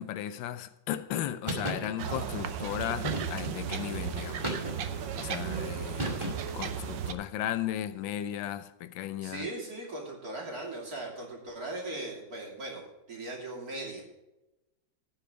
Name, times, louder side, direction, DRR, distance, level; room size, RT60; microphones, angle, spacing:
voice 1, 0.0-4.5 5.1-9.5, left 11 dB, 80° left, 1.4 m, -35 dB
sound 1, 1.5-1.9 3.0-3.6 4.4-5.0 6.0-6.6, right 1 dB, 15° right, 2.2 m, -34 dB
sound 2, 2.0-7.1, right 8 dB, 70° right, 1.5 m, -35 dB
voice 2, 9.2-14.0, right 2 dB, 50° right, 3.4 m, -39 dB
17.0 x 5.8 x 5.0 m
omnidirectional pair, 2.1 m